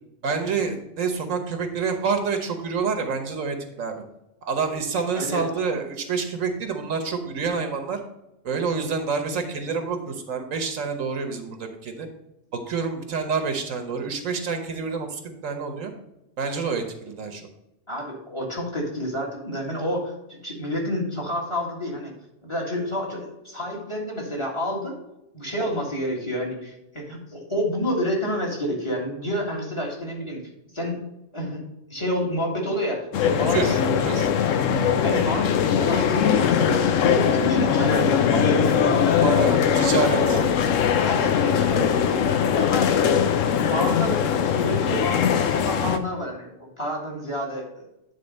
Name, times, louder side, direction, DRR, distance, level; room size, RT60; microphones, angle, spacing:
voice 1, 0.2-4.0 4.4-8.0 8.4-12.1 12.5-15.9 16.4-17.5 33.5-34.3 38.8-38.9 39.2-40.4, right 5 dB, 85° right, 6 dB, 1.4 m, -28 dB
voice 2, 5.1-5.4 17.9-22.1 22.4-25.0 25.3-30.4 30.7-31.0 31.3-31.6 31.9-33.8 35.0-36.7 37.0-40.4 41.0-42.2 42.5-42.9 43.3-47.8, equal, 20° left, -1 dB, 1.9 m, -29 dB
sound 1, 33.1-46.0, left 7 dB, 75° left, 1.0 m, -21 dB
9.6 x 3.8 x 5.3 m, 0.88 s
omnidirectional pair, 1.3 m